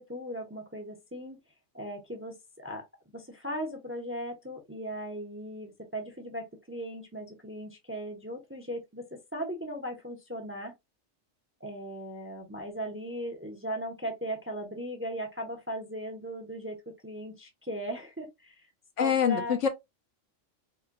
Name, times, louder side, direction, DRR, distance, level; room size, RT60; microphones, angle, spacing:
voice 1, 0.0-1.4 1.7-2.8 3.1-10.7 11.6-18.6 19.0-19.6, equal, 15° right, 0.6 m, -38 dB
voice 2, 19.0-19.7, left 7 dB, 75° left, 1.1 m, -25 dB
4.8 x 2.2 x 2.6 m
omnidirectional pair, 1.3 m